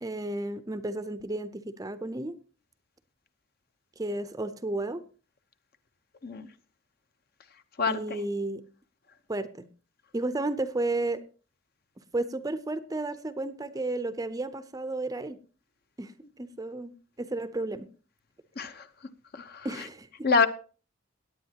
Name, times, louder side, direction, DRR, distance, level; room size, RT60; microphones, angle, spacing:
voice 1, 0.0-2.3 4.0-5.0 7.9-8.6 9.3-9.6 10.1-11.2 12.1-15.4 16.0-16.1 16.4-16.9 17.2-17.9 19.6-20.1, right 2 dB, 20° right, 0.6 m, -32 dB
voice 2, 7.8-8.2 18.6-18.9 19.3-19.7 20.2-20.5, left 4 dB, 50° left, 0.8 m, -26 dB
17.0 x 9.5 x 2.9 m
head